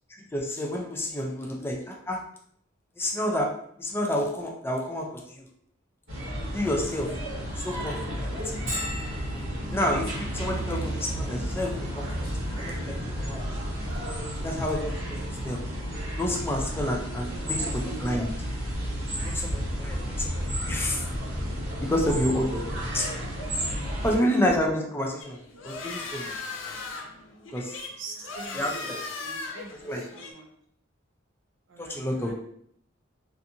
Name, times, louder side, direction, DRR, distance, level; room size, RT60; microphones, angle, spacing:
voice 1, 0.1-2.2 3.0-3.5 3.8-5.5 6.5-8.3 9.7-13.6 14.4-15.6 16.2-18.3 19.2-21.1 21.8-22.6 22.9-23.1 24.0-26.4 27.5-27.8 28.5-29.0 29.8-30.0 31.8-32.3, left 1 dB, 10° left, 0 dB, 0.4 m, -29 dB
sound 1, 6.1-24.2, equal, 90° right, 1.3 m, -32 dB
Bell, 8.7-24.1, equal, 30° right, 1.0 m, -46 dB
voice 2, 17.3-18.1 22.9-23.1 23.9-24.3 28.0-28.9 29.2-30.5 31.7-32.3, right 3 dB, 70° right, 2 dB, 0.6 m, -44 dB
sound 2, 25.2-30.3, left 3 dB, 75° left, 0.5 m, -38 dB
2.6 x 2.5 x 2.6 m, 0.67 s
head